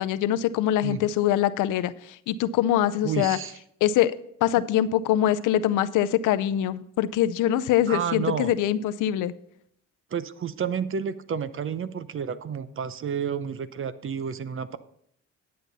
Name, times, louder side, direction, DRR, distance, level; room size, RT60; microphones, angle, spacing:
voice 1, 0.0-3.4 3.8-4.1 4.4-9.3, left 11 dB, 85° left, 14 dB, 0.6 m, -23 dB
voice 2, 3.0-3.6 7.9-8.5 10.1-14.8, right 7 dB, 45° right, 14 dB, 0.7 m, -30 dB
10.0 x 8.6 x 4.0 m, 0.70 s
cardioid pair, 90°, 30 cm